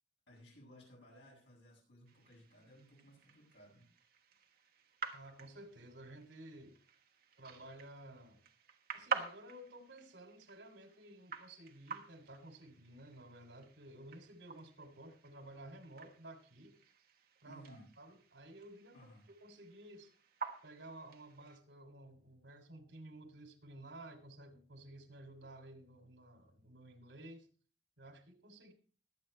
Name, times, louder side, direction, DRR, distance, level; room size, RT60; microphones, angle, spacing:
voice 1, 0.3-3.9 17.4-17.9 18.9-19.2, equal, 85° left, -3 dB, 7.9 m, -59 dB
sound 1, 2.1-21.6, right 5 dB, 55° right, 1.4 m, -48 dB
voice 2, 5.1-6.8 7.4-8.4 8.9-16.8 17.4-19.0 19.3-20.1 20.6-27.5 28.0-28.7, right 1 dB, 90° right, 6 dB, 3.0 m, -54 dB
21.5 x 8.5 x 3.3 m, 0.39 s
head